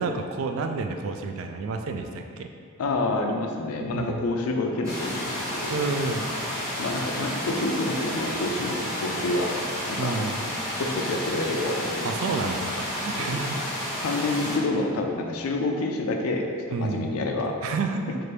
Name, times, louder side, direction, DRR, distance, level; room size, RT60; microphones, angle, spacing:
voice 1, 0.0-2.5 3.9-4.3 5.7-6.3 10.0-10.4 12.0-13.6 16.7-17.2 17.6-18.2, right 4 dB, 70° right, 5 dB, 0.3 m, -29 dB
voice 2, 2.8-5.8 6.8-9.6 9.9-10.3 10.8-12.1 13.2-13.6 14.0-17.6, left 2 dB, 90° left, 3 dB, 0.4 m, -28 dB
sound 1, 4.8-14.6, equal, 15° right, 0.9 m, -31 dB
4.3 x 2.5 x 3.2 m, 2.2 s
head